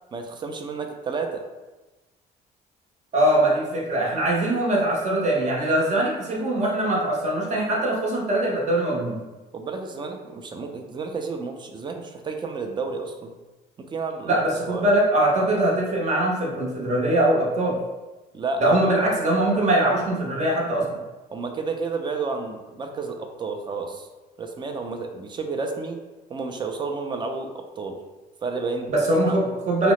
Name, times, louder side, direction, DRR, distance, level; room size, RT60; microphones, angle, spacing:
voice 1, 0.1-1.4 9.5-13.3 13.8-14.4 14.7-14.9 18.3-18.8 21.3-24.1 24.4-26.0 26.3-28.0 28.4-28.9 29.3-29.4, right 4 dB, 25° right, 4 dB, 0.3 m, -31 dB
voice 2, 3.1-9.2 14.3-17.8 18.6-20.9 28.9-29.9, right 1 dB, 45° right, -2 dB, 0.8 m, -22 dB
2.8 x 2.0 x 3.0 m, 1.1 s
cardioid pair, 110°, 17 cm